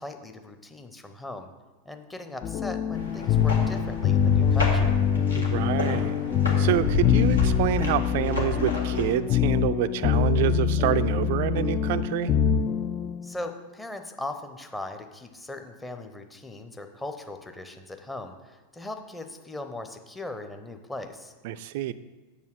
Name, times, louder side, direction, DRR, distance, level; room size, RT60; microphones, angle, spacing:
voice 1, 0.0-1.5 1.8-5.0 13.2-21.3, left 2 dB, 10° left, 6 dB, 0.8 m, -39 dB
sound 1, 2.4-13.4, left 8 dB, 30° left, 0.4 m, -24 dB
sound 2, 2.9-9.1, left 3 dB, 75° left, 1.7 m, -30 dB
voice 2, 5.4-6.1 6.6-12.3 21.4-21.9, right 12 dB, 50° right, 13 dB, 0.4 m, -27 dB
8.2 x 6.8 x 4.9 m, 1.2 s
figure-of-eight pair, 90°, 0 cm